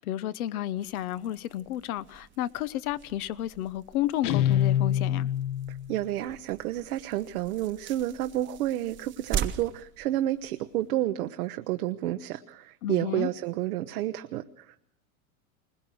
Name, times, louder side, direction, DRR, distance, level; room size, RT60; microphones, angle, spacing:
voice 1, 0.0-5.3 12.8-13.3, left 12 dB, 75° left, 1.0 m, -32 dB
sound 1, 0.8-10.9, right 9 dB, 25° right, 1.0 m, -41 dB
Guitar, 4.2-5.9, left 11 dB, 45° left, 1.0 m, -25 dB
voice 2, 5.9-14.8, right 14 dB, 75° right, 0.9 m, -30 dB
21.0 x 19.5 x 6.2 m
hypercardioid pair, 115°, 44 cm